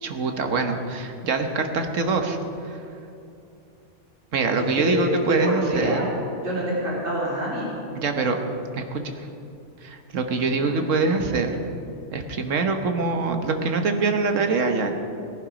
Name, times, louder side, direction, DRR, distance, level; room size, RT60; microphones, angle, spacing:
voice 1, 0.0-2.4 2.6-2.8 4.3-6.1 8.0-8.4 8.7-9.3 9.8-11.6 12.1-15.0, right 3 dB, 85° right, 5 dB, 1.5 m, -24 dB
voice 2, 4.6-6.1 6.4-7.7 10.6-10.8, equal, 65° right, -7 dB, 3.9 m, -27 dB
18.0 x 11.0 x 5.1 m, 2.7 s
omnidirectional pair, 1.3 m